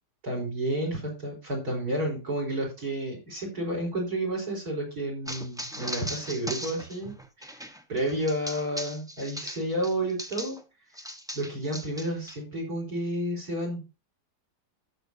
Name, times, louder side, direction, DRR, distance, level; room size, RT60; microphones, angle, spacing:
voice 1, 0.2-7.1 7.5-7.6 7.9-10.6 11.3-13.8, right 1 dB, 55° right, 1 dB, 4.6 m, -31 dB
sound 1, 5.3-10.6 11.0-12.4, equal, 5° right, 0.5 m, -38 dB
13.5 x 6.5 x 2.7 m, 0.30 s
omnidirectional pair, 2.0 m